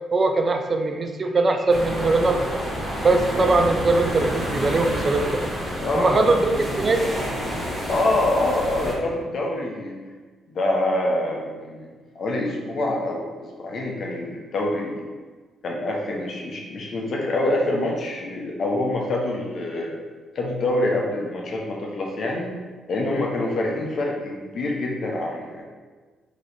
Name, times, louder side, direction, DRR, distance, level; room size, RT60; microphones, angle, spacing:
voice 1, 0.1-2.4 3.0-5.5 5.9-7.1, right 3 dB, 35° right, 5 dB, 0.4 m, -21 dB
sound 1, 1.7-8.9, equal, 5° right, 1.2 m, -29 dB
voice 2, 5.8-6.3 7.9-10.0 10.5-11.9 12.1-15.1 15.6-20.0 20.3-22.5 22.9-25.6, left 1 dB, 55° left, -1 dB, 0.8 m, -25 dB
3.1 x 3.0 x 4.1 m, 1.4 s
cardioid pair, 90°, 0 cm